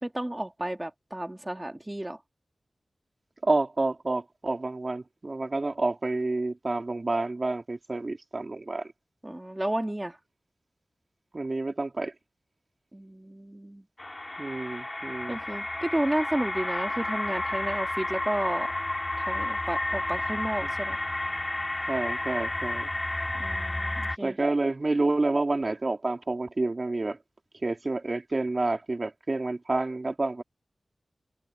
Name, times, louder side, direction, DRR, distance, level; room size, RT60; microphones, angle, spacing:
voice 1, 0.0-2.2 9.2-10.2 12.9-13.8 15.3-18.7 19.2-21.0 23.4-24.4, right 1 dB, 20° right, 2.3 m, -32 dB
voice 2, 3.4-8.9 11.3-12.1 14.4-15.4 20.6-20.7 21.9-22.9 24.2-27.2 27.6-30.4, right 2 dB, 45° right, 3.3 m, -29 dB
sound 1, 14.0-24.2, left 2 dB, 30° left, 4.6 m, -31 dB
wide cardioid pair, 65°, 0 cm